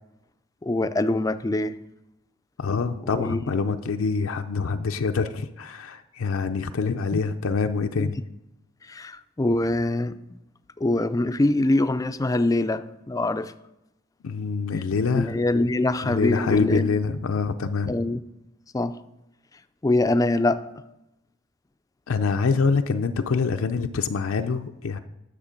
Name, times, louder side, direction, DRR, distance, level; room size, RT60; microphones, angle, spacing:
voice 1, 0.6-1.8 3.0-3.4 7.1-7.2 8.0-8.1 8.9-10.4 10.8-13.5 15.1-16.9 17.9-18.2 18.7-19.0 19.8-20.7, left 2 dB, 15° left, 0.3 m, -24 dB
voice 2, 2.6-8.2 14.2-15.3 16.0-17.9 22.1-25.0, left 4 dB, 70° left, 0.5 m, -25 dB
9.8 x 6.8 x 5.1 m
head